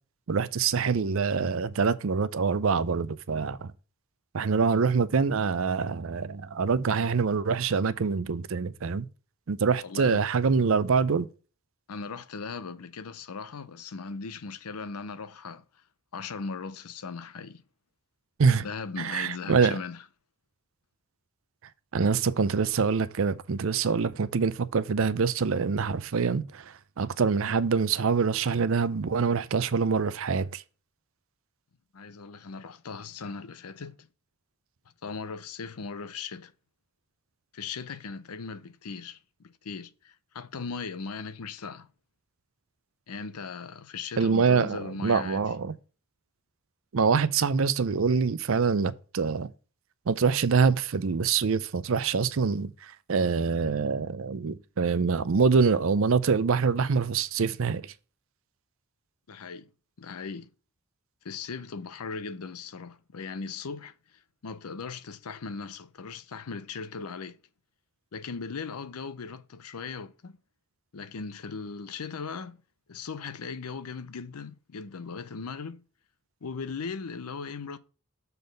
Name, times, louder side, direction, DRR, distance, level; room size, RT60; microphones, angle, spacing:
voice 1, 0.3-3.7 4.3-9.1 9.5-11.3 18.4-18.7 19.0-19.8 21.9-30.6 44.2-45.7 46.9-49.5 50.1-57.8, right 5 dB, 65° right, 0.5 m, -25 dB
voice 2, 9.8-10.2 11.9-15.6 16.1-17.6 18.6-20.0 31.9-34.1 35.0-36.5 37.5-39.2 39.4-41.9 43.1-45.5 59.3-59.7 60.0-60.5 61.2-67.4 68.1-70.4 70.9-72.6 72.9-75.8 76.4-77.8, left 5 dB, 85° left, 0.6 m, -38 dB
6.9 x 4.1 x 5.2 m
head